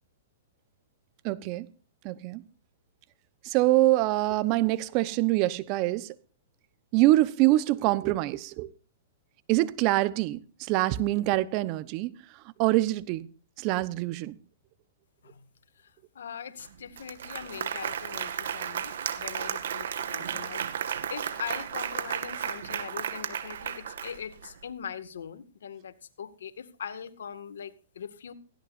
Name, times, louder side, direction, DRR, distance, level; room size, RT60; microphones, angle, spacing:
voice 1, 1.2-1.7 2.0-2.4 3.4-6.1 6.9-8.7 9.5-12.1 12.6-13.3 13.6-14.4, right 17 dB, 40° right, 1.0 m, -25 dB
voice 2, 15.8-28.3, left 7 dB, 80° left, 2.0 m, -41 dB
Applause, 16.6-16.7 17.0-24.5, right 9 dB, 70° right, 2.0 m, -34 dB
18.5 x 15.5 x 2.6 m
hypercardioid pair, 135°, 0 cm